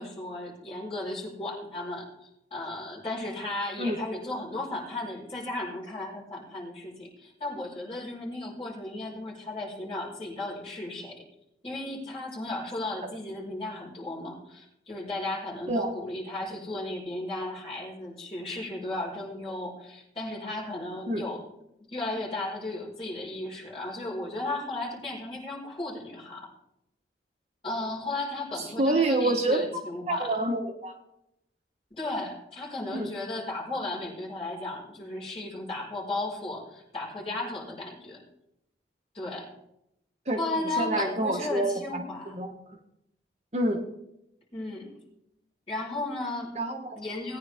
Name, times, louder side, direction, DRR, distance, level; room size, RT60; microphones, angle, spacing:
voice 1, 0.0-11.2 11.6-21.4 21.9-26.5 27.6-30.3 31.9-38.2 39.1-39.5 40.4-42.3 44.5-44.9 45.7-46.6 46.9-47.4, left 2 dB, 30° left, -5 dB, 5.0 m, -35 dB
voice 2, 28.6-29.6 30.1-30.9 32.9-33.1 40.3-40.4 40.8-42.5 43.5-43.8 46.5-47.0, right 1 dB, 35° right, 2 dB, 1.1 m, -27 dB
19.5 x 9.6 x 3.5 m, 0.83 s
head